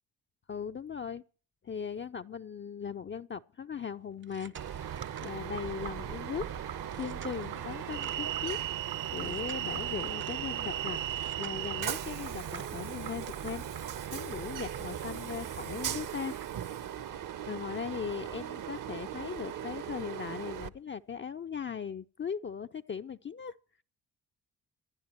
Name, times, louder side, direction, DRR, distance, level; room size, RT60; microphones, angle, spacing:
voice 1, 0.5-1.2 1.6-4.6 5.2-6.5 7.0-11.0 11.4-13.6 14.1-16.4 17.5-23.5, left 7 dB, 30° left, 0.6 m, -39 dB
sound 1, 4.1-5.9 6.8-8.4 9.2-10.4 11.0-12.9 14.1-16.0 16.4-16.5 17.0-17.1 17.6-17.7 18.0-18.1 18.5-18.6 18.9-19.0 19.4-20.4 21.5-21.6, right 5 dB, 30° right, 0.6 m, -51 dB
Train, 4.5-20.7, right 10 dB, 50° right, 0.9 m, -37 dB
sound 2, 4.8-16.5, right 10 dB, 70° right, 2.2 m, -46 dB
26.5 x 11.0 x 3.0 m
hypercardioid pair, 50°, 42 cm